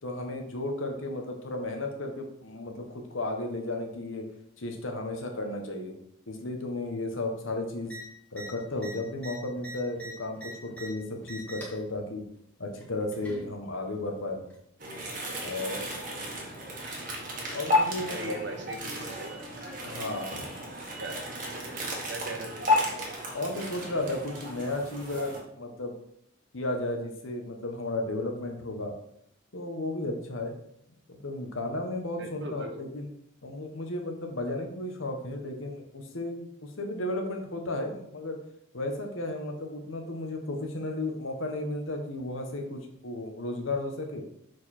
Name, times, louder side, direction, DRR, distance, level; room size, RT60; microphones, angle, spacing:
voice 1, 0.0-4.3 4.6-6.0 6.3-7.9 8.3-12.2 12.6-14.4 15.4-15.8 17.5-18.4 19.8-20.6 23.3-26.0 26.5-28.9 29.5-30.5 31.1-33.1 33.4-38.4 38.7-44.3, left 2 dB, 75° left, 3 dB, 1.2 m, -34 dB
sound 1, 7.8-8.0 8.3-8.5 8.8-10.9 11.2-11.8 12.8-13.5 14.5-14.6, right 2 dB, 5° left, 1.5 m, -42 dB
sound 2, 14.8-25.4, left 1 dB, 40° right, 1.5 m, -33 dB
voice 2, 18.1-19.4 21.0-21.2 22.1-22.6 32.2-32.8, right 1 dB, 55° right, 3 dB, 1.2 m, -39 dB
6.7 x 4.7 x 4.3 m, 0.73 s
head